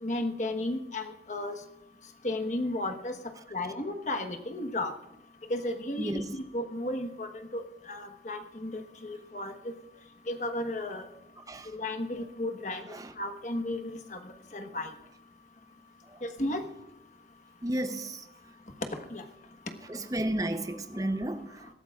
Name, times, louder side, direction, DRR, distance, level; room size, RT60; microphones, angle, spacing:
voice 1, 0.0-1.5 2.2-3.1 3.5-4.9 5.5-9.5 10.3-11.0 11.7-14.9 16.2-16.6 19.1-19.2, left 1 dB, 45° left, 1.2 m, -34 dB
voice 2, 6.0-6.4 11.5-11.7 12.9-13.1 16.1-16.2 17.6-18.2 19.9-21.7, right 1 dB, 20° right, 0.6 m, -33 dB
22.0 x 13.0 x 2.4 m
head